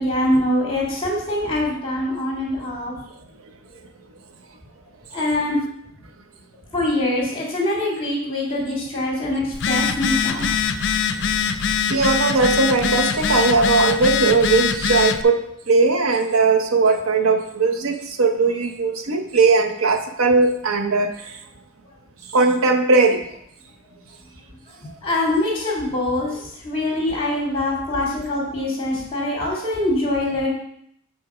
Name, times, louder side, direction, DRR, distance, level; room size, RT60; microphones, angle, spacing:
voice 1, 0.0-2.9 5.1-5.6 6.7-10.6 24.8-30.5, left 1 dB, 25° left, -3 dB, 2.5 m, -24 dB
Telephone, 9.5-15.2, left 6 dB, 55° left, 0.4 m, -22 dB
voice 2, 11.6-15.4 15.7-21.4 22.3-23.2, right 3 dB, 80° right, 6 dB, 0.8 m, -19 dB
7.8 x 4.2 x 4.9 m, 0.70 s
head